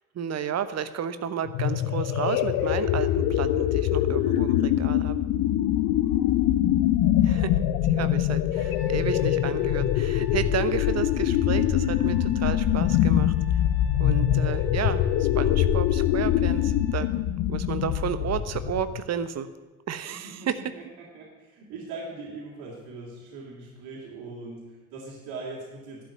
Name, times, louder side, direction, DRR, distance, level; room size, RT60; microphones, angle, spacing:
voice 1, 0.1-5.2 7.2-7.6 7.9-13.3 14.0-17.1 17.5-19.5 19.9-20.6, right 8 dB, 35° right, 12 dB, 1.0 m, -32 dB
sound 1, 1.4-19.0, left 11 dB, 55° left, 0.8 m, -24 dB
Trumpet, 8.5-17.1, left 2 dB, 5° left, 3.5 m, -50 dB
voice 2, 20.1-20.5 20.8-26.0, right 3 dB, 60° right, -5 dB, 3.0 m, -40 dB
11.5 x 6.0 x 9.2 m, 1.2 s
figure-of-eight pair, 55°, 43 cm